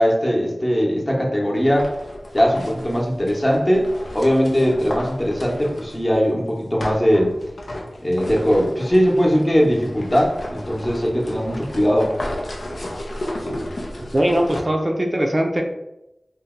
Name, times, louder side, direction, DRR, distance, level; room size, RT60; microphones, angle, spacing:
voice 1, 0.0-1.9 2.3-3.9 4.1-7.4 8.0-12.1, equal, 30° left, -2 dB, 0.8 m, -19 dB
sound 1, 1.5-6.2 6.8-14.6, left 1 dB, 90° left, 0.5 m, -33 dB
voice 2, 14.1-15.6, right 1 dB, 35° right, 1 dB, 0.4 m, -20 dB
2.7 x 2.1 x 3.6 m, 0.89 s
wide cardioid pair, 45°, 0 cm